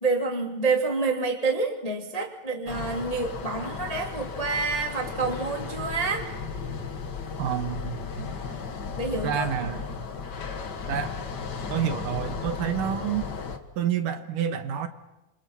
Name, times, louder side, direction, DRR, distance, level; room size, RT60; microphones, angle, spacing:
voice 1, 0.0-6.3 9.0-9.5, right 3 dB, 20° left, 2 dB, 1.1 m, -28 dB
sound 1, 2.7-13.6, left 5 dB, 85° left, 0.9 m, -35 dB
voice 2, 7.4-8.3 9.2-9.9 10.9-11.1 11.7-13.2 13.8-14.9, right 8 dB, 65° right, 8 dB, 2.6 m, -28 dB
27.5 x 27.0 x 5.8 m, 0.97 s
omnidirectional pair, 4.5 m